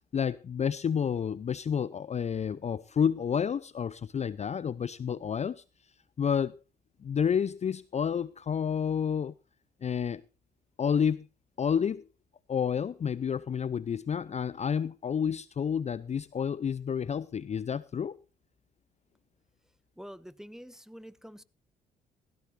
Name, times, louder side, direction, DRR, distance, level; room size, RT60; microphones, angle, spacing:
voice 1, 0.1-5.6 6.2-6.6 7.0-9.3 9.8-10.2 10.8-11.3 11.6-12.0 12.5-18.2, left 7 dB, 35° left, 0.5 m, -30 dB
voice 2, 20.0-21.4, equal, ahead, 1.1 m, -46 dB
16.5 x 15.5 x 2.6 m
hypercardioid pair, 50°, 21 cm